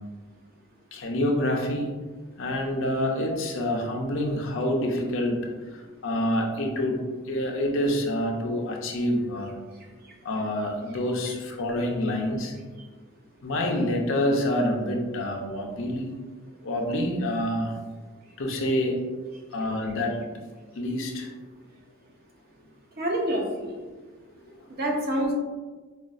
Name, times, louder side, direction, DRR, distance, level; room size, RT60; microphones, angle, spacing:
voice 1, 0.9-1.9 2.4-9.5 10.2-12.5 13.4-16.1 16.6-17.7 18.4-19.0 19.5-20.2 20.8-21.3, left 1 dB, 65° left, 1 dB, 0.6 m, -27 dB
voice 2, 23.0-23.8 24.7-25.3, right 1 dB, 45° right, 0 dB, 0.6 m, -27 dB
5.0 x 2.4 x 2.4 m, 1.3 s
head